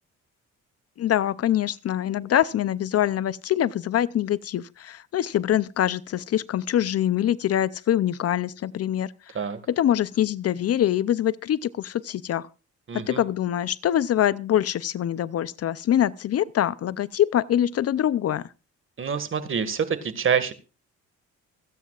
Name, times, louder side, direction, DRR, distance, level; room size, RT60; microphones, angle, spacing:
voice 1, 1.0-9.1 9.7-12.5 13.1-18.4, left 11 dB, 55° left, 0.6 m, -24 dB
voice 2, 12.9-13.2 19.0-20.5, right 7 dB, 45° right, 1.8 m, -26 dB
26.0 x 9.3 x 2.4 m
cardioid pair, 90°, 30 cm